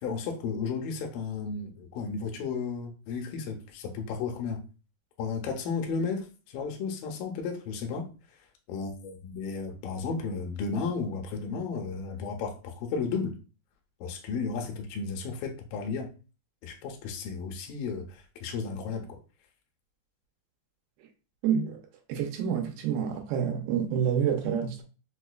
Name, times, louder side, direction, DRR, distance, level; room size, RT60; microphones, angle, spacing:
voice 1, 0.0-4.6 5.2-8.1 8.7-13.3 14.0-16.1 16.6-19.2, left 5 dB, 85° left, 2.3 m, -33 dB
voice 2, 21.4-21.8 22.1-24.8, right 8 dB, 80° right, 2.3 m, -28 dB
5.7 x 2.1 x 2.2 m
omnidirectional pair, 4.1 m